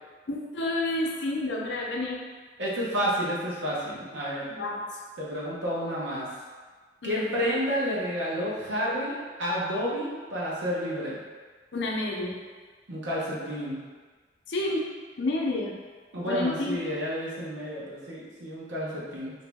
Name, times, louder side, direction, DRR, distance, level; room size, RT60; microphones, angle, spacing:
voice 1, 0.3-2.2 4.5-4.8 7.0-7.2 11.7-12.4 14.5-14.9 15.2-15.7 16.3-16.8, left 2 dB, 70° left, -1 dB, 0.6 m, -29 dB
voice 2, 2.6-4.5 5.2-6.3 7.0-11.2 12.9-13.8 16.1-19.3, equal, 80° right, -6 dB, 0.9 m, -30 dB
3.0 x 2.7 x 3.4 m, 1.4 s
head